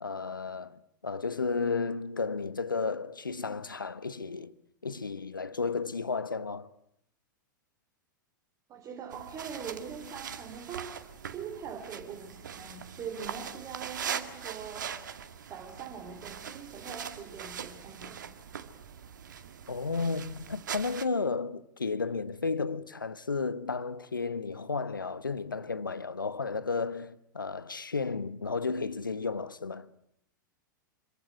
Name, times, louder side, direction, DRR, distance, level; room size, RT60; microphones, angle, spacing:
voice 1, 0.0-4.5 4.8-6.7 19.7-29.9, left 4 dB, 80° left, 1.1 m, -33 dB
voice 2, 8.7-10.9 11.3-15.0 15.5-18.2, right 6 dB, 30° right, 3.5 m, -42 dB
sound 1, 9.1-21.0, right 8 dB, 65° right, 2.0 m, -41 dB
26.0 x 23.0 x 8.2 m
figure-of-eight pair, 95°, 11 cm